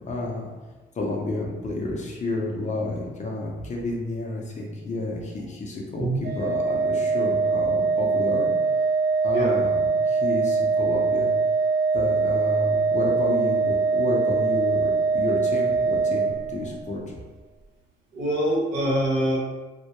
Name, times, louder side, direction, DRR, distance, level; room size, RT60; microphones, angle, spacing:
voice 1, 0.1-0.5 0.9-6.1 6.4-8.5 9.2-11.3 11.9-17.0, left 2 dB, 35° left, -1 dB, 0.6 m, -30 dB
voice 2, 6.0-6.3 9.3-9.6 18.1-19.4, right 1 dB, 75° right, -5 dB, 0.9 m, -24 dB
Organ, 6.2-16.9, right 4 dB, 55° right, 0.4 m, -23 dB
2.2 x 2.1 x 2.8 m, 1.2 s
cardioid pair, 90°, 20 cm